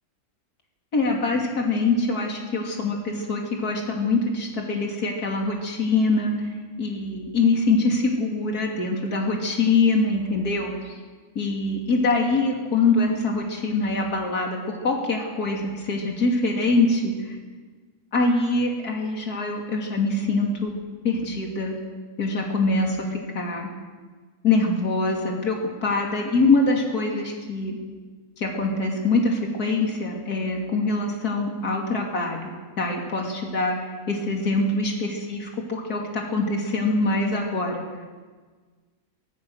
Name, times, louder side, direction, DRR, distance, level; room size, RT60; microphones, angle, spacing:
voice 1, 0.9-6.5 6.8-10.9 11.3-17.4 18.1-21.7 22.2-23.7 24.4-25.6 25.8-27.8 28.4-32.4 32.8-37.8, left 3 dB, 65° left, 0 dB, 3.4 m, -24 dB
24.0 x 20.0 x 6.5 m, 1.5 s
omnidirectional pair, 1.7 m